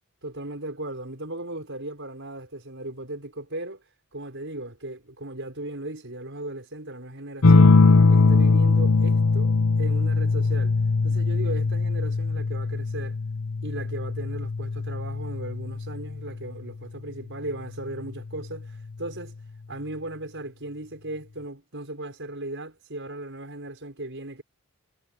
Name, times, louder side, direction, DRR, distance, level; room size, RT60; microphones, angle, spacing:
voice 1, 0.2-3.8 4.1-7.8 8.1-10.8 11.0-13.2 13.6-19.3 19.7-24.4, right 1 dB, 55° right, 6.4 m, -37 dB
sound 1, 7.4-16.5 17.9-18.5, left 3 dB, 80° left, 0.8 m, -21 dB
head